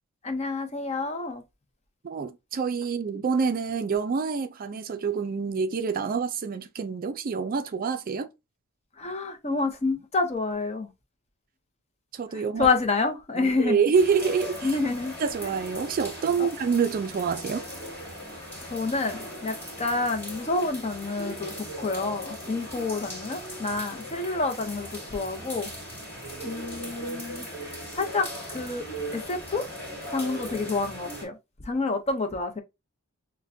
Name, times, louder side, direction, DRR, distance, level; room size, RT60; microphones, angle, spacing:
voice 1, 0.2-1.4 9.0-10.9 12.3-13.8 14.6-15.1 15.4-15.5 16.4-16.5 18.6-25.7 26.4-27.5 27.9-28.3 28.5-28.9 29.1-29.7 30.1-31.4 31.6-32.6, left 3 dB, 30° left, 0.6 m, -28 dB
voice 2, 2.0-8.3 12.1-12.7 13.4-14.7 15.2-17.7, right 5 dB, 40° right, 0.3 m, -27 dB
sound 1, 13.9-31.2, equal, 10° left, 2.1 m, -38 dB
6.3 x 2.2 x 2.6 m
head